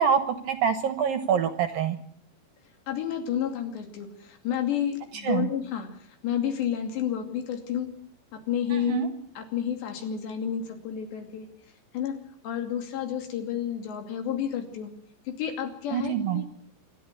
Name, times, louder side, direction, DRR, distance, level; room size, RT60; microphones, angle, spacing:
voice 1, 0.0-2.0 5.2-5.5 8.7-9.1 15.9-16.4, right 7 dB, 65° right, 10 dB, 2.5 m, -25 dB
voice 2, 2.9-7.9 8.3-9.1 9.4-11.5 11.9-12.2 12.4-14.9 15.3-16.5, left 9 dB, 75° left, 6 dB, 4.8 m, -30 dB
27.0 x 11.5 x 9.7 m, 0.64 s
omnidirectional pair, 5.1 m